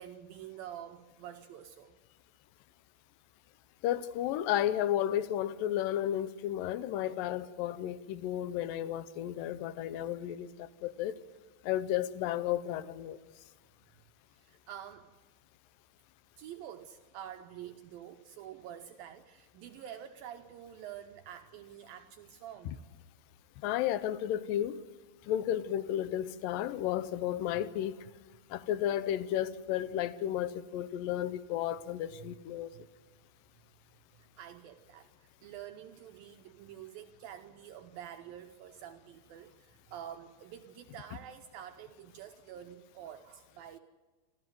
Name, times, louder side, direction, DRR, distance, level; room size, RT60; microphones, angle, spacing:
voice 1, 0.0-2.0 14.3-15.1 16.4-22.8 27.5-27.6 32.2-32.3 32.7-32.9 34.1-43.8, right 10 dB, 75° right, 2.3 m, -48 dB
voice 2, 3.8-11.2 11.6-13.2 22.7-22.8 23.6-24.8 25.3-28.0 28.5-32.7, left 11 dB, 75° left, 2.2 m, -33 dB
27.0 x 13.5 x 7.7 m
omnidirectional pair, 4.7 m